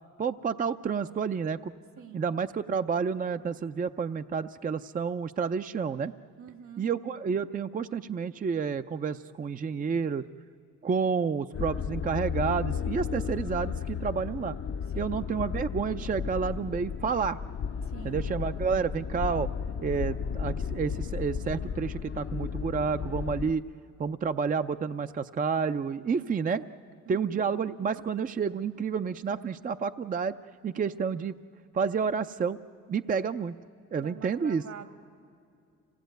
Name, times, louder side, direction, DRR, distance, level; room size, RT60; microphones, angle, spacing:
voice 1, 0.2-1.7 2.1-6.1 6.8-10.2 10.8-14.6 15.0-17.4 18.0-19.5 19.8-23.6 24.0-26.6 27.1-30.4 30.6-31.4 31.7-32.6 32.9-33.6 33.9-34.6, right 6 dB, 30° right, 10 dB, 0.5 m, -30 dB
voice 2, 2.0-2.3 6.4-6.9 14.9-15.2 17.8-18.2 26.3-26.4 27.1-27.4 34.0-34.9, right 8 dB, 70° right, 9 dB, 2.3 m, -46 dB
sound 1, 11.5-23.5, left 7 dB, 45° left, 0.7 m, -34 dB
25.5 x 18.0 x 9.1 m, 2.5 s
cardioid pair, 90°, 30 cm